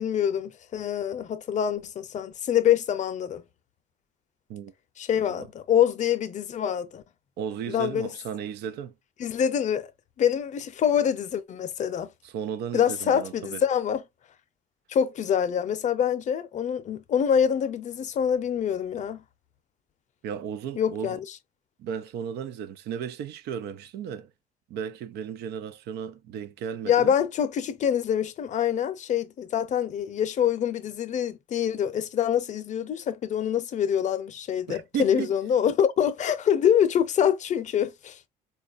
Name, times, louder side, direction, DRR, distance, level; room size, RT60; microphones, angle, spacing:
voice 1, 0.0-3.4 5.0-7.0 7.7-8.1 9.2-9.9 10.2-12.1 12.7-14.0 14.9-19.2 20.8-21.2 26.9-38.2, left 9 dB, 45° left, 0.6 m, -25 dB
voice 2, 7.4-8.9 12.2-13.6 20.2-21.2 21.8-24.3 24.7-27.1 34.7-35.3, right 8 dB, 75° right, 0.5 m, -34 dB
4.1 x 2.4 x 2.4 m
cardioid pair, 110°, 17 cm